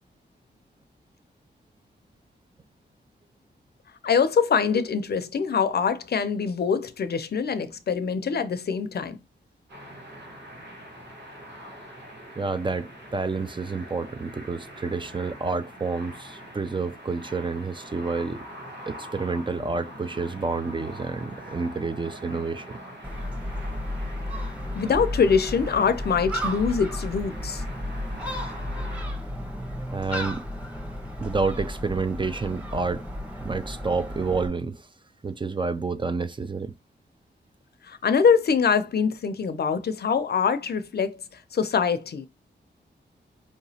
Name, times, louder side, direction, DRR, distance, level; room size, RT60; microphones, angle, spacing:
voice 1, 4.0-9.2 24.7-27.6 37.8-42.3, left 6 dB, 60° left, 0.5 m, -24 dB
sound 1, 9.7-29.1, equal, 70° right, 1.3 m, -43 dB
voice 2, 12.4-18.5 18.9-22.8 29.9-30.4 31.2-33.0 33.4-34.9 35.2-36.7, right 4 dB, 25° right, 0.4 m, -29 dB
Gull seagull, 23.0-34.5, left 1 dB, 5° right, 1.1 m, -33 dB
4.6 x 2.9 x 2.8 m
wide cardioid pair, 95°, 19 cm